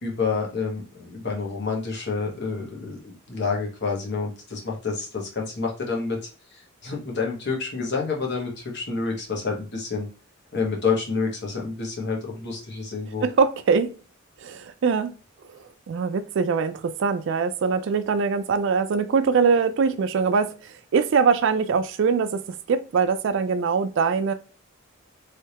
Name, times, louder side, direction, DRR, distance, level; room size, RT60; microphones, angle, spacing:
voice 1, 0.0-10.1 10.5-13.3, left 4 dB, 55° left, 1.1 m, -28 dB
voice 2, 13.2-13.9 14.4-15.1 15.5-24.3, right 5 dB, 65° right, 0.4 m, -23 dB
3.3 x 2.7 x 2.8 m
head